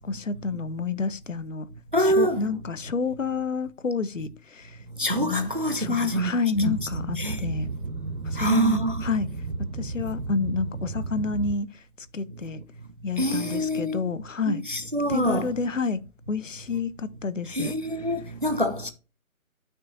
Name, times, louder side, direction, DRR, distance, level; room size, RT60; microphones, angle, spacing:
voice 1, 0.1-1.7 2.0-4.8 5.2-7.7 8.2-9.3 9.7-11.7 12.1-12.6 13.0-14.6 15.1-16.0 16.3-17.7, left 4 dB, 60° left, 0.7 m, -29 dB
voice 2, 1.9-2.4 5.0-6.3 7.2-7.4 8.4-9.0 13.2-14.0 14.5-15.5 17.5-18.9, right 1 dB, 40° right, 0.5 m, -25 dB
Boat Water vehicle, 6.5-11.6, right 3 dB, 90° right, 0.9 m, -33 dB
9.4 x 6.2 x 2.6 m
figure-of-eight pair, 155°, 43 cm